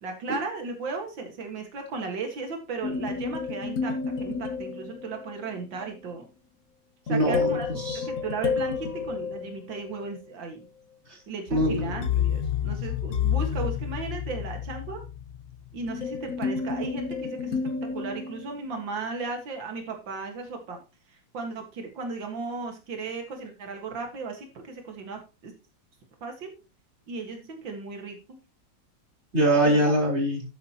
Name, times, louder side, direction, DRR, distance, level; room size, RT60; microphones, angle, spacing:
voice 1, 0.0-3.9 4.2-6.3 7.1-7.7 8.0-10.6 11.3-15.0 15.7-20.8 21.1-25.5 26.2-26.5 27.1-28.4 29.6-29.9, right 4 dB, 90° right, 3 dB, 2.5 m, -35 dB
sound 1, 2.8-5.4 7.1-10.0 11.5-18.8, left 7 dB, 55° left, 1.2 m, -30 dB
voice 2, 7.1-8.0 11.5-11.9 29.3-30.4, right 1 dB, 35° right, -1 dB, 4.3 m, -23 dB
11.5 x 9.1 x 2.9 m, 0.30 s
omnidirectional pair, 2.0 m